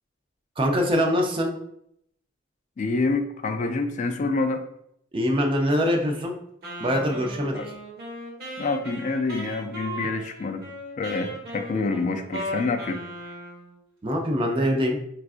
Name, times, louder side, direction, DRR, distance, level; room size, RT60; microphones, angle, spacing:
voice 1, 0.6-1.5 5.1-6.3 6.8-7.6 14.0-15.0, equal, 25° right, 2 dB, 0.5 m, -23 dB
voice 2, 2.8-4.6 7.5-7.7 8.6-10.7 11.0-13.3, left 3 dB, 40° left, 6 dB, 0.3 m, -27 dB
Wind instrument woodwind instrument, 6.6-13.8, equal, 55° right, 1.1 m, -37 dB
4.4 x 2.4 x 2.4 m, 0.73 s
head